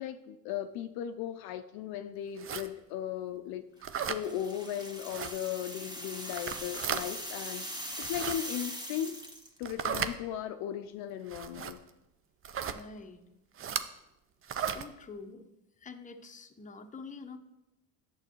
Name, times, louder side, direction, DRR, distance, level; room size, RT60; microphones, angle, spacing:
voice 1, 0.0-3.6 4.0-7.7 8.0-9.2 9.6-11.8, left 10 dB, 60° left, 8 dB, 0.5 m, -37 dB
sound 1, 2.4-2.7 3.8-4.2 5.1-5.3 6.3-7.0 7.9-8.4 9.6-10.1 11.3-11.7 12.4-12.8 13.6-13.9 14.4-14.8, right 8 dB, 30° right, 0.5 m, -35 dB
sound 2, 4.0-9.6, equal, 10° right, 1.4 m, -41 dB
voice 2, 12.7-13.2 14.6-15.5 15.8-17.4, left 4 dB, 20° left, 6 dB, 0.7 m, -46 dB
8.7 x 6.9 x 3.0 m, 0.93 s
hypercardioid pair, 70°, 41 cm